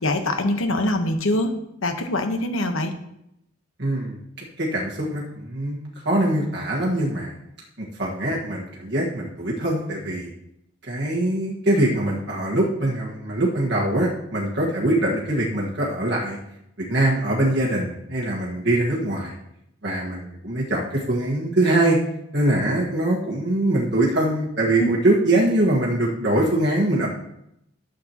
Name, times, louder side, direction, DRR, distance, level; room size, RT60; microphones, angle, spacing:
voice 1, 0.0-1.5 1.8-2.9 24.8-24.9, left 1 dB, 80° left, 6 dB, 1.1 m, -23 dB
voice 2, 3.8-4.1 4.6-7.3 7.8-10.3 10.9-16.4 16.8-19.3 19.8-22.0 22.3-27.1, right 1 dB, 55° right, -3 dB, 1.6 m, -23 dB
12.0 x 7.9 x 3.0 m, 0.79 s
head